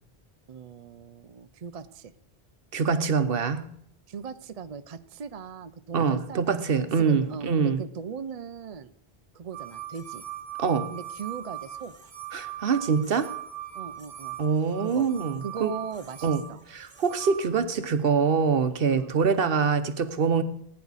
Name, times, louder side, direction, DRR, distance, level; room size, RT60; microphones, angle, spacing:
voice 1, 0.5-2.1 4.1-6.4 6.7-8.9 9.3-10.2 10.9-11.9 13.7-14.4 14.8-15.1 15.4-16.6 18.8-19.2, right 6 dB, 45° right, 0.6 m, -39 dB
voice 2, 2.7-3.7 5.9-7.8 10.6-10.9 12.3-13.3 14.4-15.7 16.2-16.4 16.7-20.4, right 6 dB, 65° right, 1.0 m, -24 dB
sound 1, 9.5-17.4, right 11 dB, 80° right, 1.4 m, -40 dB
19.5 x 9.6 x 4.1 m
omnidirectional pair, 1.0 m